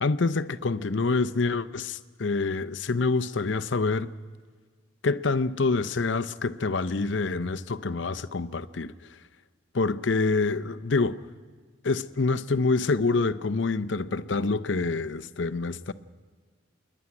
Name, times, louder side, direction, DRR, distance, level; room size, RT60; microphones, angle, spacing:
voice 1, 0.0-4.1 5.0-8.9 9.7-11.2 11.8-15.9, left 3 dB, 70° left, 0.7 m, -26 dB
28.0 x 11.0 x 9.6 m
head